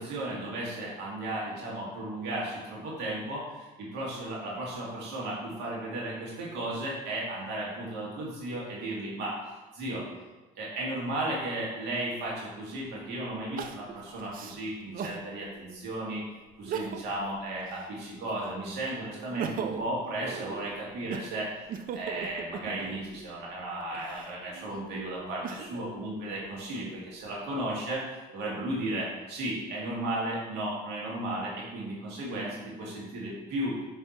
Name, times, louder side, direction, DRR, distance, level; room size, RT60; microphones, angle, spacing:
voice 1, 0.0-9.4 9.7-10.0 10.6-16.2 16.6-21.5 21.9-28.0 28.3-33.7, right 1 dB, 85° right, -4 dB, 2.0 m, -35 dB
Crying sobbing, 12.2-12.3 13.6-15.3 15.8-15.9 16.5-17.2 17.6-18.6 19.1-23.1 23.8-25.9 26.5-27.3, right 7 dB, 55° right, 0.5 m, -39 dB
7.0 x 3.4 x 4.2 m, 1.2 s
cardioid pair, 110°, 17 cm